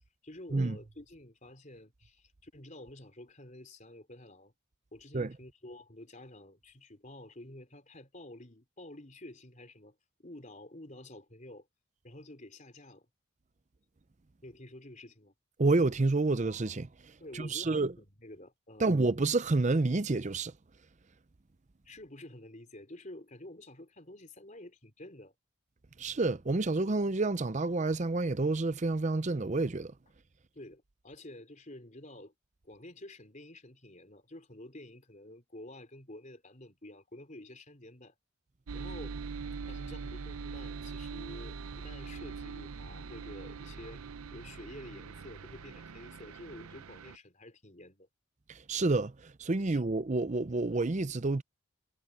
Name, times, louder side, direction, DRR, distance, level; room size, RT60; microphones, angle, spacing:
voice 1, 0.2-4.5 4.9-11.7 12.0-13.1 14.4-15.3 17.2-18.9 21.8-25.3 30.5-32.3 32.6-38.1 38.7-39.2 39.7-44.0 44.3-48.1 49.7-49.8, left 1 dB, 35° left, 4.1 m, -50 dB
voice 2, 15.6-17.9 18.8-20.5 26.0-29.9 48.5-51.4, right 3 dB, 35° right, 0.6 m, -29 dB
sound 1, 38.7-47.2, right 5 dB, 85° right, 0.7 m, -42 dB
head